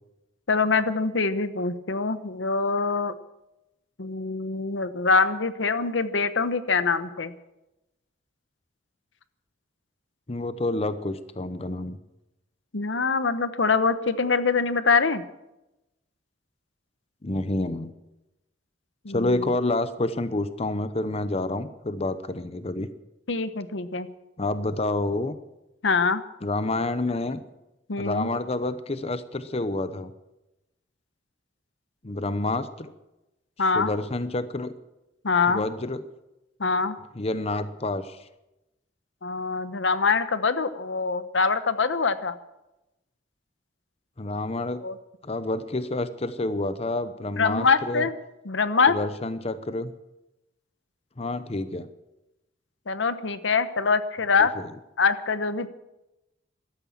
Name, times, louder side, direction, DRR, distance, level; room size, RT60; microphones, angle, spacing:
voice 1, 0.5-3.1 4.0-7.3 12.7-15.2 19.0-19.5 23.3-24.1 25.8-26.2 27.9-28.3 33.6-33.9 35.2-35.6 36.6-37.0 39.2-42.4 44.8-44.9 47.4-48.1 48.5-49.0 52.9-54.5 55.0-55.7, left 4 dB, 90° left, 12 dB, 1.0 m, -24 dB
voice 2, 10.3-12.0 17.2-17.9 19.1-22.9 24.4-25.4 26.4-27.4 28.0-30.1 32.0-32.9 33.7-34.7 35.5-36.0 37.1-38.2 44.2-44.8 45.2-48.1 48.9-49.9 51.2-51.9 54.4-54.7, left 2 dB, 35° left, 13 dB, 0.8 m, -28 dB
14.5 x 12.5 x 7.3 m, 0.95 s
head